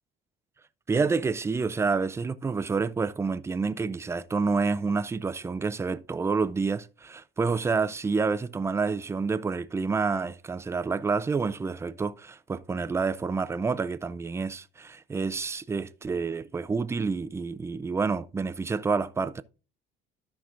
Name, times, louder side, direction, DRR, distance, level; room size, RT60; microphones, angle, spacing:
voice 1, 0.9-19.4, right 4 dB, 15° right, 0.4 m, -28 dB
13.5 x 5.8 x 2.5 m
cardioid pair, 150°, 21 cm